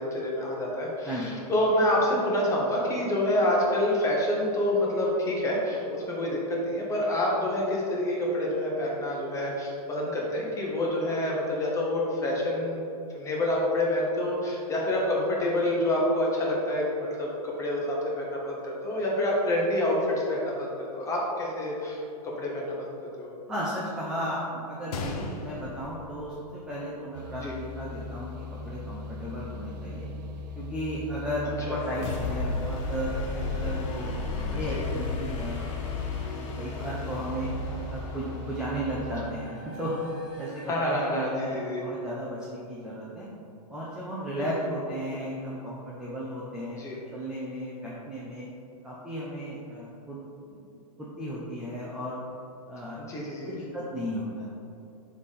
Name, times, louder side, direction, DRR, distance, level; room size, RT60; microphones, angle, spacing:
voice 1, 0.0-12.8 13.1-16.8 17.2-23.3 27.4-27.5 31.7-31.8 34.7-34.8 40.7-41.8 44.4-44.5 46.8-47.0 53.0-53.5, left 1 dB, 15° left, -3 dB, 1.1 m, -27 dB
voice 2, 23.5-26.4 26.7-30.1 30.6-33.1 33.5-34.2 34.5-36.1 36.4-37.5 37.9-40.0 40.4-41.5 41.8-43.3 43.7-46.8 47.1-48.5 48.8-50.2 50.5-50.6 51.0-52.2 52.7-53.0 53.4-54.5, equal, 5° right, -7 dB, 0.6 m, -35 dB
Gunshot gunfire, 24.9-26.9 27.2-27.3 28.0-28.2, left 3 dB, 65° left, 0.8 m, -37 dB
sound 1, 27.1-39.1, left 2 dB, 85° right, 0.7 m, -39 dB
sound 2, 31.7-41.5, left 3 dB, 45° left, 1.1 m, -35 dB
7.2 x 3.5 x 4.2 m, 2.8 s
hypercardioid pair, 140°, 21 cm